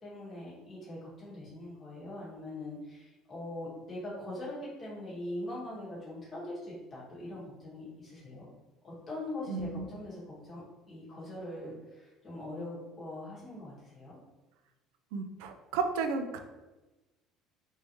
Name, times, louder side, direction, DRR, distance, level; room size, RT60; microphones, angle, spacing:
voice 1, 0.0-8.5 8.8-14.2, left 1 dB, 30° left, -8 dB, 1.5 m, -42 dB
voice 2, 9.5-9.8 15.1-16.4, right 5 dB, 85° right, 7 dB, 0.4 m, -33 dB
3.4 x 2.7 x 3.0 m, 1.1 s
cardioid pair, 125°, 0 cm